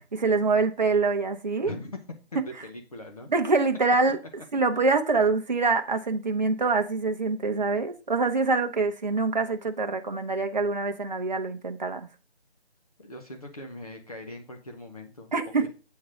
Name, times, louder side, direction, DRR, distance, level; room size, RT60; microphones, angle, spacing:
voice 1, 0.1-1.7 3.3-4.2 4.5-12.1 15.3-15.7, right 3 dB, 40° right, 0.9 m, -25 dB
voice 2, 1.6-2.0 2.3-3.3 13.0-15.3, left 1 dB, 35° left, 0.9 m, -40 dB
8.3 x 3.8 x 6.3 m
figure-of-eight pair, 165°, 33 cm